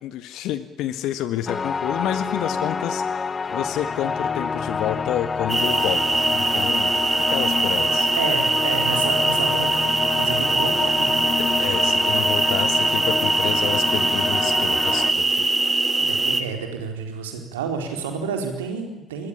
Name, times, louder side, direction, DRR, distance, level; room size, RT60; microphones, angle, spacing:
voice 1, 0.0-6.9 7.3-8.1 11.6-15.6, left 11 dB, 65° left, 12 dB, 1.6 m, -29 dB
sound 1, 1.5-15.1, left 5 dB, 35° left, 1.4 m, -27 dB
sound 2, 5.5-16.4, right 3 dB, 25° right, 3.3 m, -22 dB
voice 2, 8.2-11.2 16.0-19.3, right 6 dB, 80° right, 5 dB, 4.2 m, -30 dB
27.0 x 21.0 x 8.8 m, 0.95 s
figure-of-eight pair, 50°, 0 cm